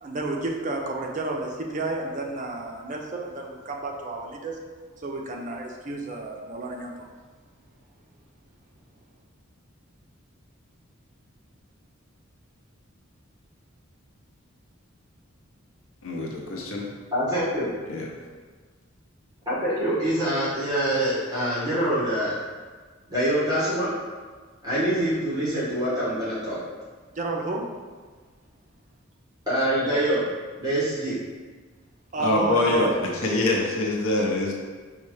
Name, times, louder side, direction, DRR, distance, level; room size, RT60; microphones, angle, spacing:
voice 1, 0.0-4.6 5.0-7.1 27.1-27.7 32.1-32.9, right 2 dB, 40° right, 0 dB, 0.5 m, -31 dB
voice 2, 16.0-16.9 17.9-18.1 32.2-34.5, left 2 dB, 80° left, -1 dB, 0.6 m, -24 dB
voice 3, 17.1-17.7 19.5-22.4 23.1-23.9 24.6-26.6 29.5-30.3 30.6-31.2, right 1 dB, 20° right, -10 dB, 1.1 m, -25 dB
5.5 x 2.3 x 3.1 m, 1.4 s
head